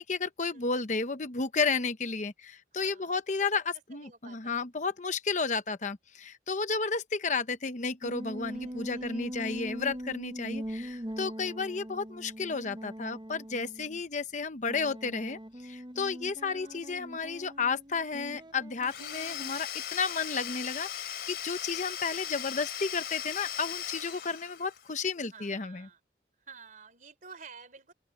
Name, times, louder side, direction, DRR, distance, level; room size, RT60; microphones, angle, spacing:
voice 1, 0.0-25.9, left 4 dB, 45° left, 0.9 m, -32 dB
voice 2, 2.7-3.6 3.9-4.9 8.5-9.6 11.0-11.3 16.5-16.8 25.3-26.0 26.4-27.9, right 5 dB, 45° right, 3.4 m, -53 dB
sound 1, 8.0-14.0 14.7-19.5, equal, 25° right, 1.0 m, -41 dB
Domestic sounds home sounds / Tools, 18.8-24.9, left 10 dB, 60° left, 3.5 m, -38 dB
open air
head